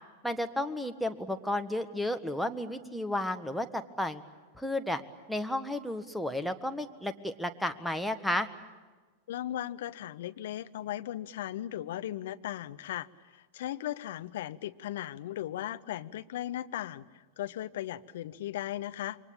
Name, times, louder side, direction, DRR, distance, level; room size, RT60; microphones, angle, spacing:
voice 1, 0.2-4.2 4.5-5.0 5.3-8.5, left 1 dB, ahead, 11 dB, 1.5 m, -32 dB
voice 2, 9.3-13.1 13.3-19.2, left 12 dB, 55° left, 12 dB, 0.8 m, -37 dB
28.0 x 24.0 x 8.8 m, 1.3 s
figure-of-eight pair, 90°, 0 cm